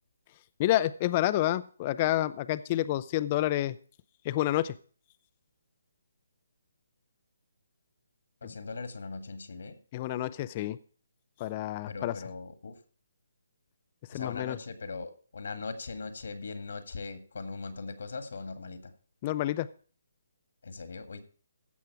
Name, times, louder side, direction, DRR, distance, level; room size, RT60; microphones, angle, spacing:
voice 1, 0.6-3.8 4.2-4.7 9.9-10.8 11.4-12.1 14.1-14.6 19.2-19.7, left 14 dB, 25° left, 15 dB, 0.4 m, -29 dB
voice 2, 8.4-9.8 11.9-12.8 14.1-18.9 20.6-21.2, left 4 dB, 70° left, 10 dB, 1.8 m, -40 dB
15.5 x 6.2 x 4.6 m, 0.41 s
hypercardioid pair, 160°, 0 cm